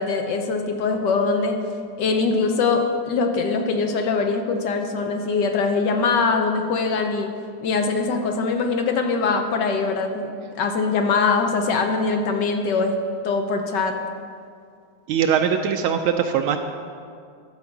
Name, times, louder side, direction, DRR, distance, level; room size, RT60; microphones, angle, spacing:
voice 1, 0.0-1.6 2.0-7.3 7.6-10.3 10.6-12.9 13.2-14.0, left 4 dB, 65° left, 4 dB, 1.2 m, -22 dB
voice 2, 15.1-16.6, right 8 dB, 80° right, 5 dB, 1.4 m, -21 dB
12.5 x 4.9 x 7.1 m, 2.3 s
omnidirectional pair, 2.4 m